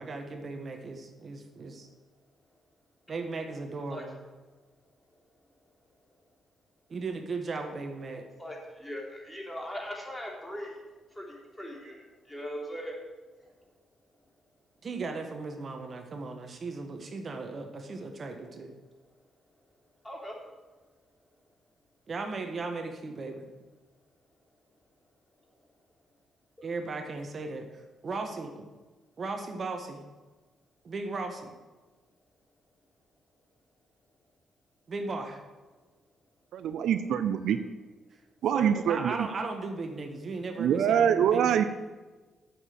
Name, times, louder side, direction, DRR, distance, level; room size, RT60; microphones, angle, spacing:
voice 1, 0.0-1.9 3.1-4.2 6.9-8.2 14.8-18.7 22.1-23.5 26.6-28.6 29.2-30.1 30.8-31.5 34.9-35.4 38.5-41.6, right 3 dB, 50° right, 4 dB, 1.3 m, -36 dB
voice 2, 8.4-10.8 11.1-12.9 20.0-20.4 26.6-26.7 37.4-37.5, equal, 10° left, -1 dB, 3.5 m, -40 dB
voice 3, 36.5-37.6 38.4-39.2 40.6-41.6, right 9 dB, 75° right, 11 dB, 0.5 m, -25 dB
7.9 x 6.5 x 7.7 m, 1.2 s
hypercardioid pair, 50°, 0 cm